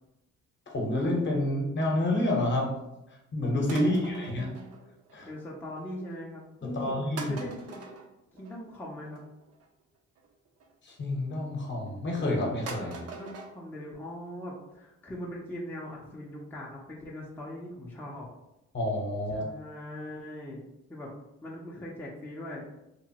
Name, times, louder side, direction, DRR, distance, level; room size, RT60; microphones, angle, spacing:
voice 1, 0.7-2.8 3.3-4.5 5.1-5.3 6.6-7.4 10.9-13.0 18.7-19.5, left 1 dB, 40° left, 0 dB, 0.8 m, -28 dB
sound 1, 3.7-5.4 5.7-6.2 6.8-6.9 7.2-10.7 11.4-12.0 12.3-12.4 12.7-13.5 13.9-14.0 14.2-14.3 14.7-14.8 15.0-15.1 15.5-15.6 15.9-16.0 16.4-16.5 16.7-16.8, right 4 dB, 55° right, 0.5 m, -44 dB
voice 2, 3.8-4.7 5.3-7.0 7.2-7.9 8.3-9.2 12.9-18.3 19.3-20.6 20.9-21.1 21.4-22.6, left 1 dB, 5° left, -4 dB, 0.5 m, -41 dB
2.9 x 2.0 x 2.8 m, 0.91 s
cardioid pair, 90°, 30 cm